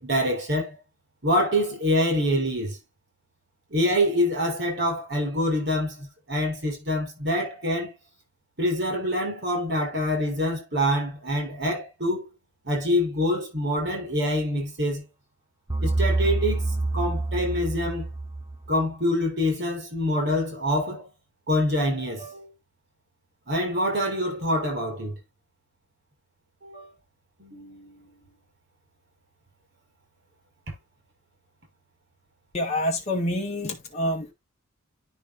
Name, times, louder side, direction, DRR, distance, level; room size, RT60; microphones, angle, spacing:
voice 1, 0.0-0.8 1.2-2.8 3.7-7.9 8.6-12.3 12.7-15.0 15.8-16.7 16.9-18.1 18.7-21.1 21.5-22.5 23.5-25.2 26.6-26.9 27.4-28.1, equal, 55° right, 6.0 m, -25 dB
sound 1, 15.7-18.8, right 2 dB, 15° right, 0.7 m, -27 dB
voice 2, 32.5-34.3, left 1 dB, 35° left, 1.7 m, -27 dB
10.5 x 5.8 x 2.6 m
head